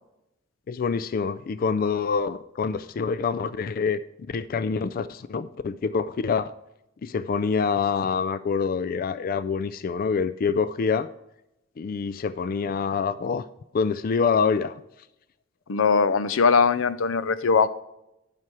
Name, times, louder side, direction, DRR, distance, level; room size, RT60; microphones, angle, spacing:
voice 1, 0.7-4.0 4.3-6.5 7.0-11.1 11.8-13.4 13.7-14.8, left 5 dB, 45° left, 15 dB, 0.3 m, -26 dB
voice 2, 15.7-17.7, left 5 dB, 90° left, 14 dB, 0.6 m, -20 dB
10.5 x 5.9 x 4.7 m, 0.87 s
head